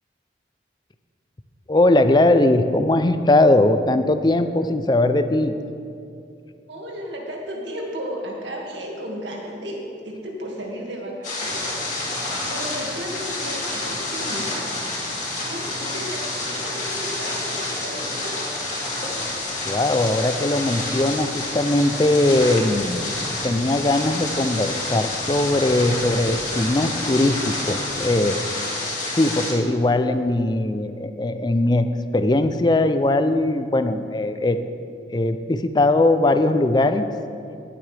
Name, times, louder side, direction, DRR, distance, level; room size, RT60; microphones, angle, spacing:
voice 1, 1.7-5.5 19.7-23.1 23.4-28.4 29.1-31.9 32.1-34.6 35.1-37.1, left 2 dB, 25° left, 10 dB, 0.4 m, -20 dB
voice 2, 6.7-11.7 12.5-14.5 15.4-18.5, equal, 85° right, -1 dB, 2.0 m, -34 dB
sound 1, 11.2-29.5, left 2 dB, 40° left, 2.4 m, -29 dB
sound 2, 11.4-28.4, equal, 10° right, 0.8 m, -40 dB
18.5 x 7.6 x 3.4 m, 2.5 s
head